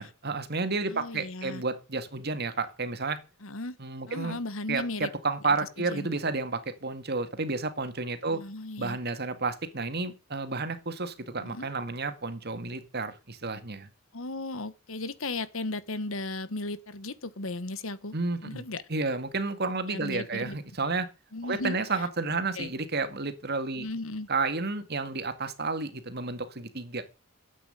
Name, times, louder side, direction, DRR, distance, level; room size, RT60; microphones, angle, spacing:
voice 1, 0.0-3.2 3.8-4.4 4.7-8.4 8.8-13.9 18.1-18.6 18.9-21.1 21.4-23.9 24.3-27.0, right 3 dB, 50° right, 2.1 m, -31 dB
voice 2, 0.9-1.6 3.4-3.8 4.1-5.1 5.4-6.1 8.3-9.0 11.4-11.7 14.1-18.1 18.4-18.8 19.9-20.6 21.3-22.0 22.5-22.7 23.8-24.3, left 2 dB, 70° left, 1.3 m, -36 dB
12.5 x 8.9 x 8.1 m
head